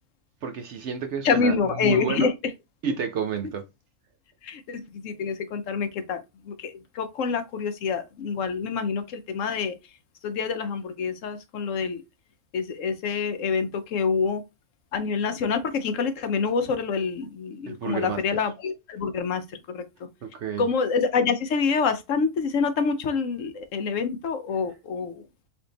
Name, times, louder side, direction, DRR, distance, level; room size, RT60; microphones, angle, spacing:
voice 1, 0.4-2.3 2.8-3.6 17.7-18.5 20.2-20.7 24.5-24.8, right 7 dB, 65° right, 0.8 m, -31 dB
voice 2, 1.2-2.3 4.4-6.2 6.5-9.7 10.2-12.0 12.5-14.4 14.9-19.4 19.7-19.8 20.6-25.1, left 5 dB, 65° left, 0.9 m, -26 dB
3.5 x 2.6 x 3.9 m
omnidirectional pair, 1.5 m